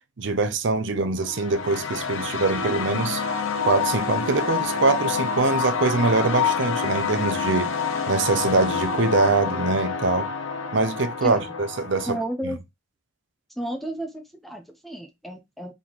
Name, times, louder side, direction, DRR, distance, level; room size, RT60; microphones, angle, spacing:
voice 1, 0.2-3.2 3.6-7.7 8.1-10.3 10.7-12.2 12.4-12.6, right 3 dB, 60° right, 0.6 m, -23 dB
sound 1, 1.2-12.2, left 6 dB, 70° left, 0.7 m, -27 dB
voice 2, 12.1-12.6 13.6-15.7, right 1 dB, ahead, 0.5 m, -32 dB
4.1 x 3.5 x 3.0 m
head